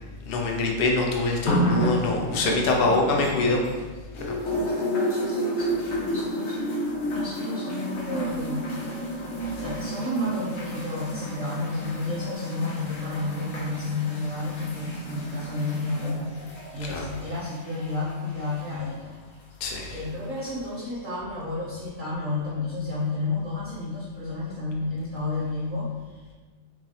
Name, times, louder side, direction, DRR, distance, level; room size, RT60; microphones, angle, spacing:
voice 1, 0.3-3.6 4.3-4.4 16.8-17.0 19.6-20.0, left 3 dB, 60° left, 0 dB, 0.6 m, -24 dB
sound 1, 1.5-3.8 4.2-18.9 19.8-19.9, equal, 90° left, 1.2 m, -31 dB
voice 2, 2.8-3.6 4.5-8.7 9.6-19.2 19.9-26.2, left 3 dB, 45° right, -7 dB, 0.7 m, -32 dB
3.6 x 3.1 x 2.7 m, 1.3 s
omnidirectional pair, 1.4 m